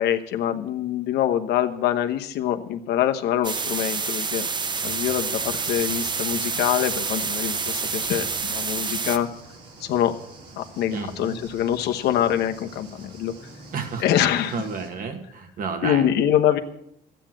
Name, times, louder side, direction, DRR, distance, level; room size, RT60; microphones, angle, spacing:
voice 1, 0.0-4.5 4.8-9.3 9.8-10.1 10.6-13.3 14.0-14.6 15.8-16.6, left 10 dB, 75° left, 7 dB, 1.1 m, -24 dB
sound 1, 3.4-9.2, right 5 dB, 25° right, 0.7 m, -28 dB
sound 2, 4.8-14.9, right 2 dB, 85° right, 3.3 m, -45 dB
voice 2, 10.9-11.4 13.7-14.0 14.5-16.3, right 5 dB, 55° right, 6 dB, 1.9 m, -31 dB
12.5 x 9.1 x 7.5 m, 0.73 s
cardioid pair, 110°, 17 cm